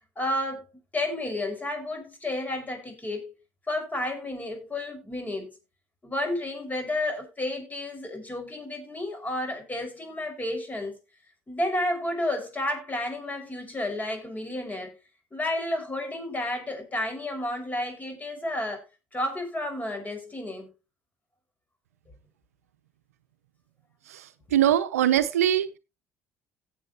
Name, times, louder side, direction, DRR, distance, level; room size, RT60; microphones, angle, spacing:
voice 1, 0.2-0.7 0.9-3.3 3.7-5.5 6.0-11.0 11.5-14.9 15.3-18.8 19.1-20.7, left 1 dB, 20° left, 5.6 m, -31 dB
voice 2, 24.1-25.8, right 11 dB, 90° right, 0.6 m, -23 dB
17.0 x 7.7 x 3.0 m
hypercardioid pair, 60°, 8 cm